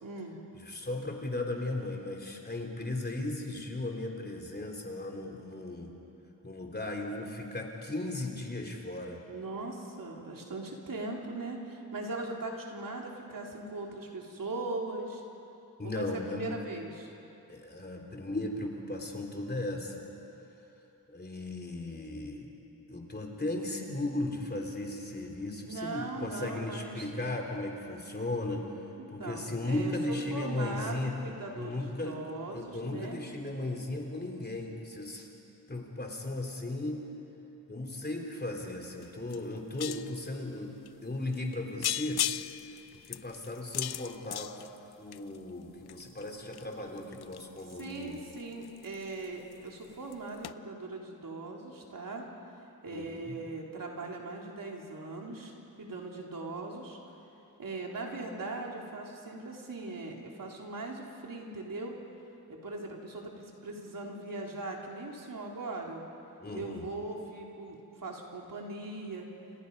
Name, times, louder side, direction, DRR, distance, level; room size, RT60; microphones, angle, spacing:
voice 1, 0.0-0.4 9.3-15.2 15.8-17.1 25.6-27.1 29.0-33.2 47.8-52.3 52.8-57.0 57.6-62.0 62.5-66.0 66.5-69.3, right 2 dB, 60° right, -1 dB, 3.5 m, -40 dB
voice 2, 0.5-5.9 6.4-9.2 15.8-16.6 17.5-20.0 21.1-22.5 22.9-28.7 29.1-31.1 31.5-32.2 32.5-35.3 35.7-37.0 37.7-42.2 42.9-44.7 45.0-48.2 52.9-53.3 66.4-66.9, left 2 dB, 25° left, 1 dB, 3.4 m, -36 dB
sound 1, 39.0-39.1 39.3-40.2 40.9-41.0 41.3-41.6 41.8-45.4 45.9-49.2 49.5-49.9 50.1-50.2 50.4-50.5, left 11 dB, 85° left, 0.6 m, -36 dB
29.5 x 27.0 x 5.5 m, 2.9 s
wide cardioid pair, 115°, 37 cm